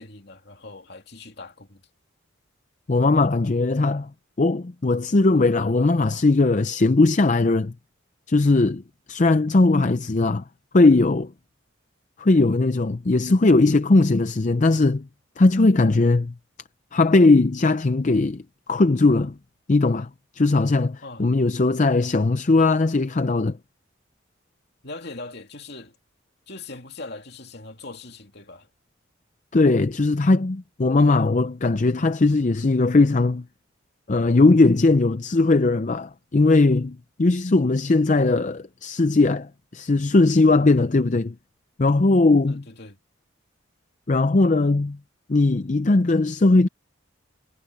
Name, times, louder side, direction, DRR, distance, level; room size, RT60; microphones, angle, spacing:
voice 1, 0.0-1.8 21.0-21.3 24.8-26.0 26.5-28.7 42.5-43.0, left 3 dB, 55° left, 2.8 m, -40 dB
voice 2, 2.9-4.1 4.4-7.7 8.3-8.8 9.1-10.4 10.7-11.3 12.2-15.1 15.4-16.3 16.9-18.4 18.7-19.3 19.7-23.6 29.5-33.4 34.1-41.3 41.8-42.6 44.1-45.0 45.3-46.7, left 3 dB, 40° left, 0.5 m, -19 dB
head